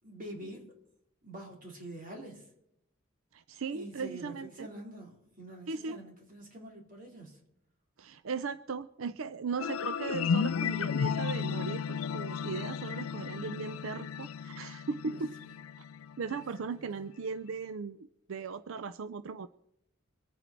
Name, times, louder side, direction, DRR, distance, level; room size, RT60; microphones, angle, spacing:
voice 1, 0.0-0.7 1.2-2.5 3.7-7.4 15.1-15.5 16.3-16.5 16.9-17.0, right 1 dB, 40° right, 0 dB, 3.9 m, -46 dB
voice 2, 3.3-4.7 5.7-6.0 8.0-15.3 16.2-19.5, right 5 dB, 80° right, 14 dB, 0.5 m, -38 dB
sound 1, 9.6-16.6, left 6 dB, 90° left, 0.4 m, -34 dB
23.5 x 9.1 x 4.5 m, 0.76 s
head